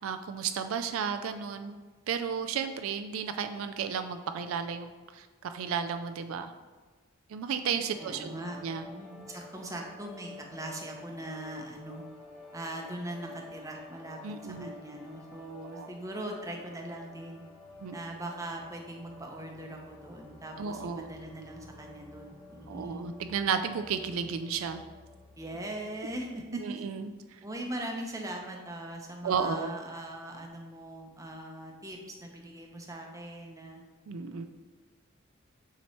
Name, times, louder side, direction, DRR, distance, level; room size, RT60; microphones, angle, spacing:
voice 1, 0.0-1.8 2.1-4.9 5.1-6.5 7.3-8.3 8.6-8.9 14.2-14.7 15.7-15.9 17.8-18.0 20.6-21.1 22.7-24.8 26.6-27.1 29.2-29.7 34.1-34.4, right 6 dB, 75° right, 8 dB, 0.3 m, -33 dB
sound 1, 7.9-26.5, left 3 dB, 10° left, 1.3 m, -51 dB
voice 2, 8.0-8.6 8.9-12.0 12.5-17.4 17.9-23.1 25.4-26.8 27.4-33.8, right 1 dB, 15° right, 1 dB, 0.7 m, -41 dB
7.1 x 3.0 x 4.3 m, 1.3 s
head